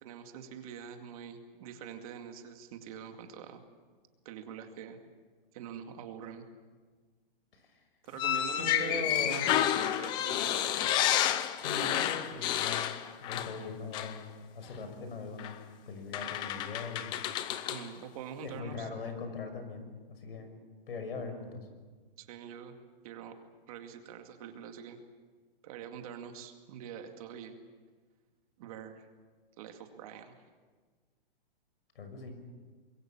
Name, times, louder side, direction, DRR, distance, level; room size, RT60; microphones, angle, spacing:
voice 1, 0.0-3.6 4.2-5.0 5.5-6.4 8.0-10.7 17.7-18.9 22.2-22.7 23.0-23.3 23.7-25.0 25.6-27.5 28.6-29.1 29.6-30.3, right 8 dB, 40° right, 5 dB, 2.3 m, -45 dB
sound 1, 8.2-13.7 13.9-14.2 15.4-15.5 16.1-17.9, left 11 dB, 15° left, 0.6 m, -30 dB
voice 2, 8.5-9.5 11.6-13.0 13.2-14.3 14.5-15.6 15.9-17.2 18.4-20.5 20.9-21.7 31.9-32.3, left 3 dB, 75° left, 7 dB, 6.2 m, -40 dB
25.5 x 22.0 x 7.2 m, 1.4 s
hypercardioid pair, 165°, 29 cm